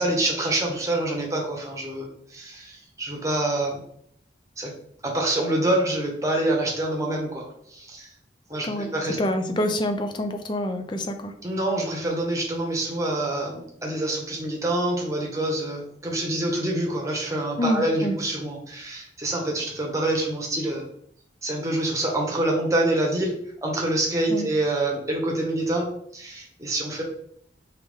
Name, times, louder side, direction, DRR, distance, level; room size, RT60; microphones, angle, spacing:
voice 1, 0.0-3.8 4.6-4.7 5.0-8.1 8.5-9.2 11.4-20.8 21.4-23.4 23.6-27.0, right 1 dB, 15° right, 0 dB, 1.0 m, -26 dB
voice 2, 9.2-11.3 17.6-18.2 24.3-24.5, left 1 dB, 25° left, 6 dB, 0.4 m, -26 dB
4.8 x 3.1 x 3.5 m, 0.69 s
head